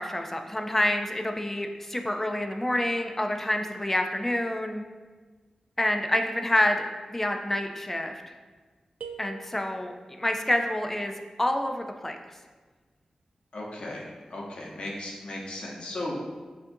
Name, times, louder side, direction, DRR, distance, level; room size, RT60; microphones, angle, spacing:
voice 1, 0.0-4.8 5.8-8.2 9.2-11.1 11.4-12.2, left 1 dB, 15° left, 4 dB, 0.3 m, -27 dB
sound 1, 9.0-10.2, right 4 dB, 85° right, 0.3 m, -43 dB
voice 2, 13.5-16.2, left 1 dB, 60° left, -3 dB, 0.9 m, -36 dB
6.8 x 2.5 x 2.6 m, 1.4 s
wide cardioid pair, 125°, 2 cm